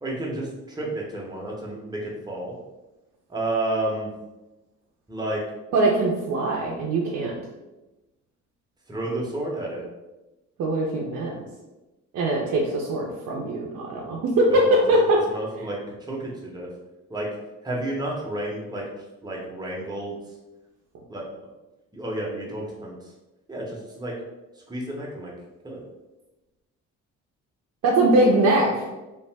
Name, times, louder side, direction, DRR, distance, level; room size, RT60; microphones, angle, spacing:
voice 1, 0.0-2.5 3.3-4.1 5.1-5.4 8.9-9.8 14.5-15.8 16.1-16.7 17.1-17.3 17.6-18.9 19.2-20.2 21.1-21.2 21.9-22.9 23.5-24.1 24.7-25.3 25.6-25.8, right 1 dB, 15° right, -3 dB, 0.9 m, -31 dB
voice 2, 5.7-7.3 10.6-11.5 12.1-14.6 14.9-15.2 27.8-28.8, right 2 dB, 65° right, -3 dB, 0.6 m, -22 dB
2.9 x 2.0 x 3.3 m, 1.0 s
cardioid pair, 90°, 30 cm